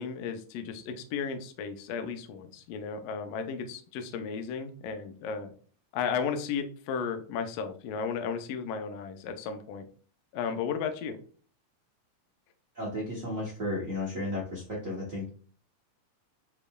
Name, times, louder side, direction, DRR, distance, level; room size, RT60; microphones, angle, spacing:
voice 1, 0.0-5.5 5.9-9.8 10.3-11.2, left 6 dB, 75° left, 6 dB, 1.6 m, -34 dB
voice 2, 12.7-15.3, left 1 dB, 80° right, -6 dB, 0.7 m, -34 dB
6.7 x 3.1 x 2.3 m, 0.42 s
omnidirectional pair, 3.4 m